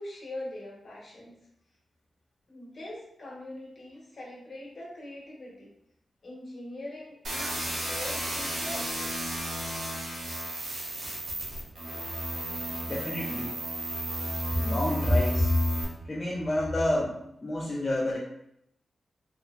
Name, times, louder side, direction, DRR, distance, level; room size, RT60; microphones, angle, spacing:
voice 1, 0.0-1.5 2.5-5.7 6.2-8.9, left 1 dB, 50° left, -4 dB, 1.1 m, -42 dB
sound 1, 7.2-15.8, right 1 dB, 75° right, 0.9 m, -33 dB
voice 2, 12.9-13.6 14.5-15.6 16.1-18.2, left 1 dB, 25° left, -4 dB, 0.4 m, -28 dB
2.8 x 2.8 x 2.5 m, 0.76 s
wide cardioid pair, 120°, 0 cm